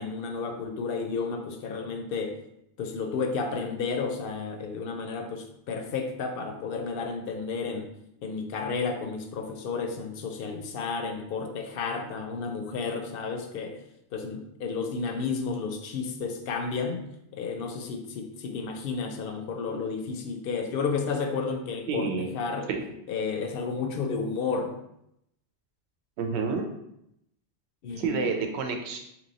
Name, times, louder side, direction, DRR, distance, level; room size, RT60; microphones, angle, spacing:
voice 1, 0.0-2.4 2.8-7.9 8.2-13.8 14.1-17.0 17.3-22.7 23.1-24.7 27.8-28.5, left 4 dB, 65° left, 6 dB, 0.7 m, -32 dB
voice 2, 21.9-22.3 22.7-22.8 26.2-26.7 28.0-29.0, right 5 dB, 75° right, 4 dB, 0.8 m, -29 dB
3.0 x 2.9 x 4.0 m, 0.79 s
omnidirectional pair, 1.1 m